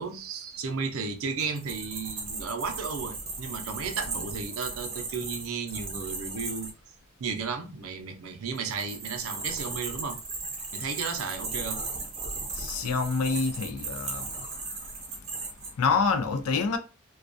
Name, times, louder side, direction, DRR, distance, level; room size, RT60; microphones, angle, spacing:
voice 1, 0.0-6.7 7.2-10.2 10.7-11.8, right 5 dB, 70° right, 0.5 m, -34 dB
sound 1, 1.4-6.7 8.5-15.7, right 3 dB, 30° right, 0.6 m, -36 dB
voice 2, 12.5-14.3 15.8-16.8, left 4 dB, 85° left, 0.4 m, -27 dB
2.2 x 2.2 x 2.5 m
head